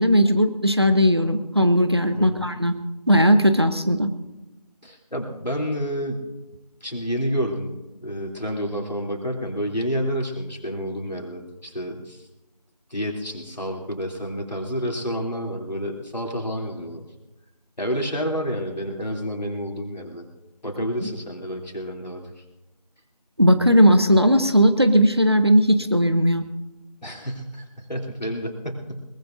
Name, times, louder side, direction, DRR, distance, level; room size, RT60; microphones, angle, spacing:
voice 1, 0.0-2.7 3.1-4.1 23.4-26.4, equal, 40° right, 9 dB, 0.8 m, -17 dB
voice 2, 2.1-2.5 4.8-6.3 6.8-12.3 12.9-17.1 17.8-20.2 20.6-22.3 27.0-29.0, equal, 80° left, 0 dB, 3.2 m, -29 dB
22.0 x 19.0 x 2.6 m, 1.0 s
figure-of-eight pair, 175°, 21 cm